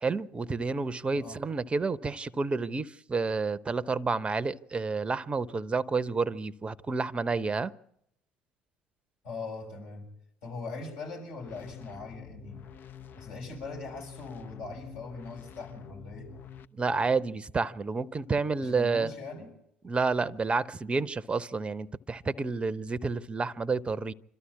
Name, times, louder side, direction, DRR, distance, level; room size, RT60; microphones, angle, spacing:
voice 1, 0.0-7.7 16.7-19.1 19.8-24.1, right 4 dB, 20° right, 0.8 m, -30 dB
voice 2, 9.2-10.1 10.4-12.7 13.2-16.3 18.6-19.5, left 3 dB, 65° left, 6.6 m, -41 dB
sound 1, 11.4-16.6, left 9 dB, 45° left, 0.8 m, -47 dB
26.5 x 13.0 x 8.4 m
figure-of-eight pair, 60°, 5 cm